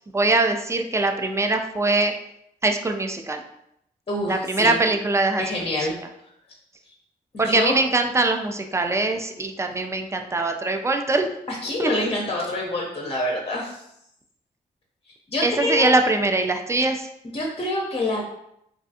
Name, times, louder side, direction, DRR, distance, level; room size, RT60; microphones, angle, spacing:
voice 1, 0.1-2.1 2.6-3.4 4.3-5.5 7.4-11.3 11.8-12.0 15.4-17.1, right 2 dB, 15° right, 5 dB, 0.4 m, -22 dB
voice 2, 4.1-4.8 5.4-6.0 7.3-7.7 11.5-13.8 15.3-16.0 17.3-18.2, left 1 dB, 30° left, -1 dB, 0.6 m, -26 dB
2.5 x 2.3 x 2.6 m, 0.78 s
hypercardioid pair, 40°, 20 cm